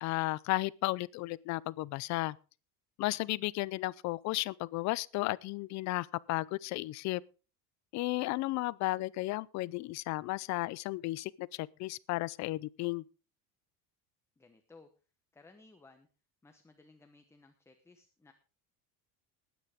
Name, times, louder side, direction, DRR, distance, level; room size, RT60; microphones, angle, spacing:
voice 1, 0.0-2.4 3.0-7.2 7.9-13.0, left 19 dB, 50° left, 0.5 m, -34 dB
voice 2, 14.4-14.9 15.3-16.1 16.4-18.3, left 3 dB, 5° left, 1.0 m, -59 dB
20.0 x 9.4 x 3.6 m
cardioid pair, 170°, 38 cm